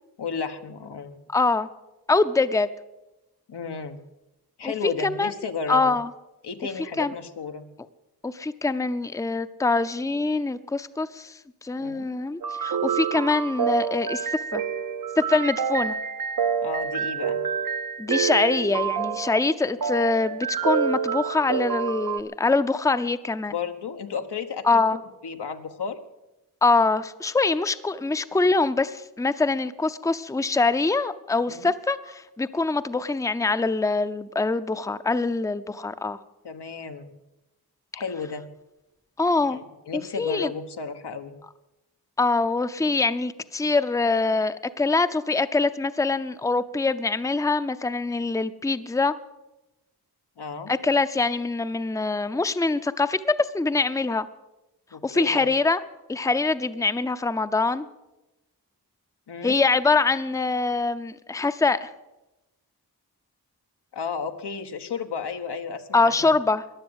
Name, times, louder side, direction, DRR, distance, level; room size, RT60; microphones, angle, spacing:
voice 1, 0.2-1.2 3.5-4.0 4.6-6.0 6.4-7.7 11.8-12.1 16.6-17.4 23.5-24.8 25.2-26.0 31.5-31.7 36.4-37.1 37.9-38.4 39.4-41.4 50.4-50.7 54.9-55.5 59.3-59.6 63.9-66.3, left 5 dB, 85° left, 6 dB, 1.2 m, -33 dB
voice 2, 1.3-1.7 2.1-2.7 4.6-5.3 5.7-6.1 7.0-7.1 8.2-11.3 11.6-14.6 15.2-16.0 18.0-23.5 24.6-25.0 26.6-36.2 39.2-39.6 39.9-40.5 42.2-49.1 50.7-54.3 55.0-55.8 56.1-57.9 59.4-61.9 65.9-66.6, left 3 dB, 10° left, 12 dB, 0.6 m, -24 dB
sound 1, 12.4-22.2, right 7 dB, 60° right, 0.7 m, -27 dB
15.0 x 10.5 x 8.0 m, 0.98 s
wide cardioid pair, 80°, 39 cm